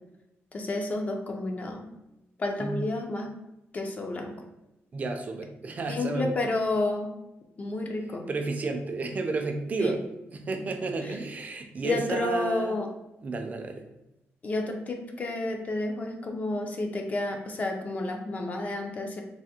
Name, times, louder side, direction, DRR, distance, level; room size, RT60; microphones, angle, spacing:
voice 1, 0.5-1.9 2.4-3.3 3.7-4.4 5.9-7.1 7.6-8.2 9.8-10.0 11.0-11.1 11.8-12.9 14.4-19.2, left 2 dB, 30° left, 3 dB, 0.4 m, -30 dB
voice 2, 4.9-6.3 8.3-10.0 10.3-12.7 13.2-13.8, right 3 dB, 30° right, 4 dB, 0.4 m, -31 dB
3.3 x 2.1 x 2.8 m, 0.92 s
cardioid pair, 140°, 5 cm